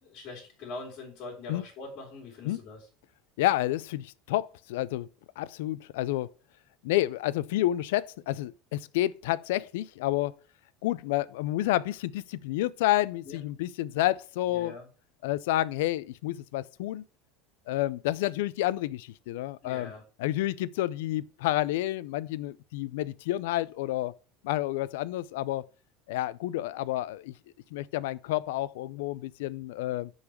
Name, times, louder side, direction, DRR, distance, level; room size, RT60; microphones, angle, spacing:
voice 1, 0.0-2.9 13.2-13.4 14.5-14.9 19.6-20.0, left 3 dB, 55° left, 2.7 m, -43 dB
voice 2, 3.4-5.1 5.4-6.3 6.8-10.3 10.8-14.7 15.2-17.0 17.7-19.9 20.2-24.1 24.4-25.6 26.1-27.3 27.7-30.1, left 15 dB, 90° left, 0.4 m, -29 dB
5.9 x 4.0 x 6.1 m
supercardioid pair, 130°, 0 cm